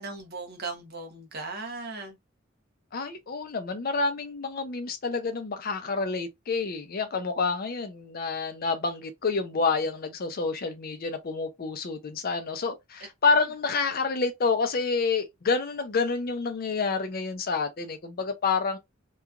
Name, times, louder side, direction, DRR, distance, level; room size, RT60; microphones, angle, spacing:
voice 1, 0.0-2.2, right 3 dB, 55° right, 0.8 m, -37 dB
voice 2, 2.9-18.8, left 4 dB, 50° left, 0.5 m, -28 dB
2.9 x 2.3 x 2.4 m
head